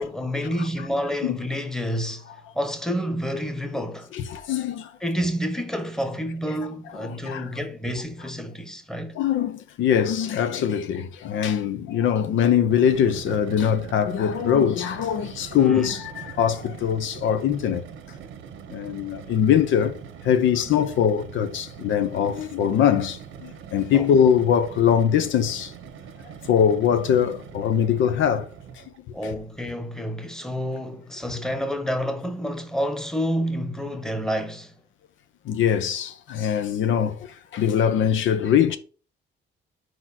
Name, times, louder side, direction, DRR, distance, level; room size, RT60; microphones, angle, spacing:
voice 1, 0.0-2.3 2.5-4.1 5.0-9.2 15.6-16.0 23.9-24.1 29.1-34.7, equal, 5° left, 1.1 m, -29 dB
voice 2, 4.1-4.9 7.0-7.5 9.1-17.9 18.7-19.9 20.2-25.7 26.5-28.5 29.2-29.3 35.5-38.8, left 8 dB, 75° left, 0.6 m, -22 dB
sound 1, 12.6-29.0, right 7 dB, 85° right, 0.9 m, -42 dB
4.6 x 4.4 x 5.7 m
cardioid pair, 90°, 20 cm